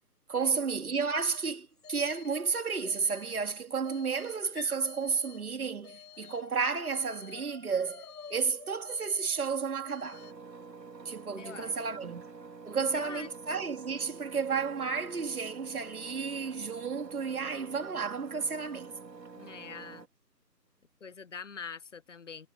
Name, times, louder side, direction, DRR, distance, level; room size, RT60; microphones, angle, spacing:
voice 1, 0.3-8.0 8.3-10.2 11.0-12.2 12.6-18.9, right 5 dB, 60° right, 2.6 m, -32 dB
sound 1, 1.2-2.5 2.8-5.5 5.8-10.3, left 6 dB, 65° left, 6.0 m, -50 dB
Engine, 10.1-20.1, right 4 dB, 80° right, 3.3 m, -47 dB
voice 2, 11.4-12.2 12.7-13.3 19.3-20.0 21.0-22.5, left 5 dB, 45° left, 1.2 m, -45 dB
figure-of-eight pair, 165°, 50 cm